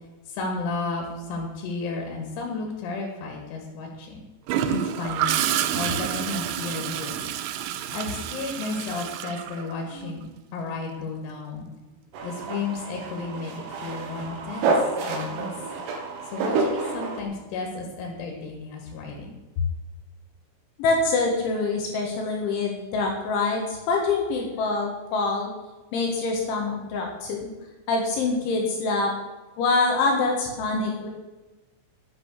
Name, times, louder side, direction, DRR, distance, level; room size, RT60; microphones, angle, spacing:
voice 1, 0.3-4.2 4.7-5.4 5.7-7.2 7.9-10.3 10.5-11.7 12.2-15.5 16.3-19.7, left 4 dB, 85° left, 1 dB, 4.8 m, -33 dB
Gurgling / Toilet flush, 4.5-10.2 12.2-12.5, right 10 dB, 85° right, 2.9 m, -29 dB
sound 1, 12.1-17.2, right 3 dB, 65° right, 2.9 m, -28 dB
voice 2, 20.8-25.5 25.9-27.5 27.9-29.1 29.6-31.1, left 3 dB, 70° left, 0 dB, 3.8 m, -25 dB
9.9 x 9.8 x 6.5 m, 1.1 s
omnidirectional pair, 6.0 m